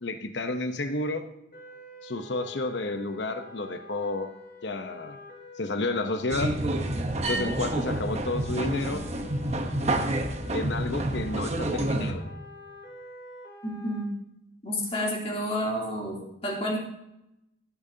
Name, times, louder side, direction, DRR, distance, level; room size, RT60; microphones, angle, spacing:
voice 1, 0.0-1.3 2.0-4.3 4.6-5.2 5.6-6.6 7.3-9.0 10.5-12.2, left 2 dB, 70° left, 7 dB, 0.9 m, -31 dB
sound 1, 1.5-14.0, left 3 dB, 55° left, 3.8 m, -47 dB
sound 2, 6.3-12.1, right 1 dB, 35° right, 1.0 m, -29 dB
voice 2, 13.6-14.1 14.6-16.8, equal, 35° left, -2 dB, 3.1 m, -30 dB
16.0 x 8.8 x 2.8 m, 0.86 s
head